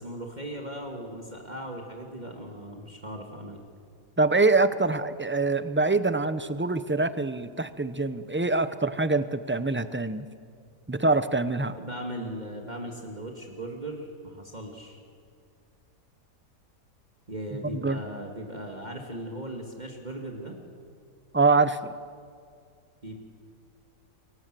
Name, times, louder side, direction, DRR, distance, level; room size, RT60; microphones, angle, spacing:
voice 1, 0.0-3.6 11.8-15.0 17.3-20.6 23.0-23.1, right 1 dB, 30° right, 1 dB, 2.4 m, -38 dB
voice 2, 4.2-10.3 10.9-11.7 17.6-18.0 21.3-21.9, right 3 dB, 10° right, 12 dB, 0.5 m, -24 dB
30.0 x 23.0 x 7.7 m, 2.2 s
omnidirectional pair, 1.5 m